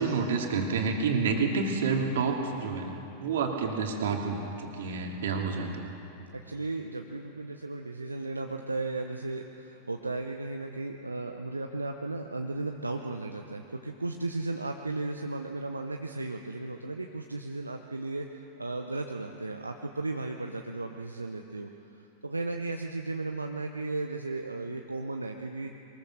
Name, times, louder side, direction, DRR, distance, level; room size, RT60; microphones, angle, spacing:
voice 1, 0.0-5.7, right 4 dB, 60° right, 2 dB, 2.6 m, -29 dB
voice 2, 6.3-25.7, right 2 dB, 80° right, 4 dB, 0.9 m, -35 dB
23.0 x 20.5 x 6.6 m, 2.9 s
figure-of-eight pair, 90°, 0 cm